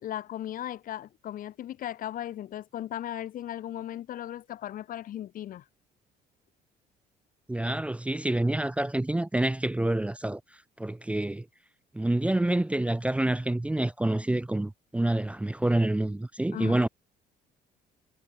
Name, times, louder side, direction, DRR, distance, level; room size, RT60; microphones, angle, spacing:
voice 1, 0.0-5.6 16.5-16.9, left 12 dB, 55° left, 0.8 m, -37 dB
voice 2, 7.5-11.5 11.9-16.9, right 1 dB, 5° right, 0.5 m, -27 dB
cardioid pair, 110°, 17 cm